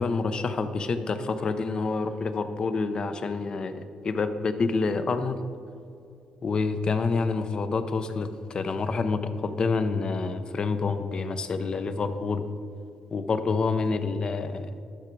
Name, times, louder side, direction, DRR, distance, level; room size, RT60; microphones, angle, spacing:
voice 1, 0.0-5.5 6.4-12.4 13.1-14.8, left 4 dB, 40° left, 10 dB, 0.6 m, -28 dB
12.0 x 5.9 x 4.6 m, 2.5 s
cardioid pair, 110°, 2 cm